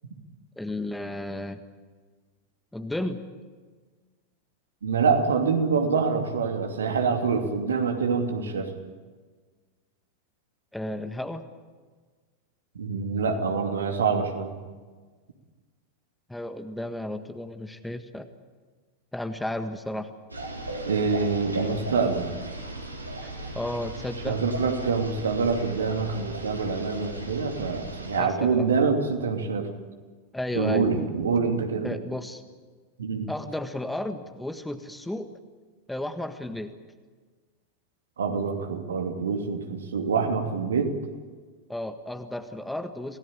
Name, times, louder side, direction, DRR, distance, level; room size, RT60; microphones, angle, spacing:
voice 1, 0.6-1.6 2.7-3.2 10.7-11.4 16.3-18.3 19.1-20.1 23.5-24.4 28.2-28.7 30.3-30.9 31.8-32.4 33.3-35.3 35.9-36.7 41.7-43.2, left 1 dB, 5° left, 8 dB, 1.6 m, -33 dB
voice 2, 4.8-8.7 12.7-14.6 20.9-22.3 24.3-29.7 30.5-32.0 33.0-33.3 38.2-40.9, right 5 dB, 65° right, 4 dB, 2.8 m, -26 dB
sound 1, 20.3-28.2, right 1 dB, 85° right, 3.6 m, -36 dB
27.5 x 17.5 x 8.9 m, 1.4 s
figure-of-eight pair, 90°, 0 cm